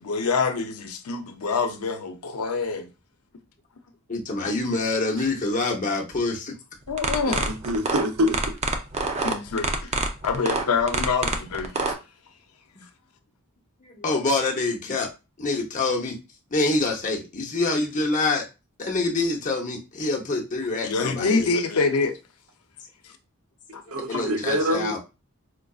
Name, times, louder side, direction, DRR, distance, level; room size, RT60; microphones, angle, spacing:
voice 1, 0.0-2.9 4.4-4.5 6.9-7.5 9.2-9.9 10.2-11.7 20.8-22.2 23.7-23.8 24.1-24.2, left 4 dB, 85° left, 0.6 m, -26 dB
voice 2, 4.1-6.5 13.8-15.1 15.4-16.2 16.5-18.4 18.8-21.5 23.7-25.0, left 3 dB, 35° left, 0.8 m, -26 dB
sound 1, 6.9-11.9, right 3 dB, 30° right, 0.5 m, -26 dB
voice 3, 7.3-8.5 23.9-25.0, equal, 80° right, 0.7 m, -25 dB
4.4 x 2.5 x 2.3 m
head